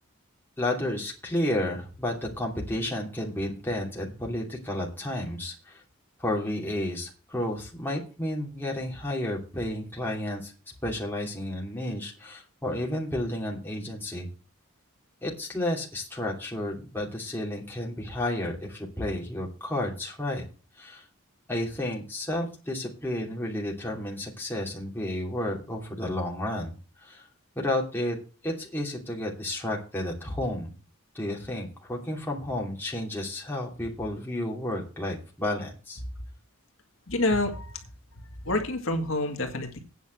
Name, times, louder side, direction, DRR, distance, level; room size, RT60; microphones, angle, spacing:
voice 1, 0.6-5.8 6.2-10.5 10.8-14.3 15.2-20.5 20.8-21.0 21.5-27.3 27.5-28.2 28.4-30.7 31.1-36.0, left 1 dB, 10° left, -2 dB, 2.8 m, -31 dB
voice 2, 37.1-37.8 38.2-39.8, left 2 dB, 65° left, 4 dB, 1.9 m, -28 dB
9.2 x 5.9 x 7.8 m, 0.35 s
head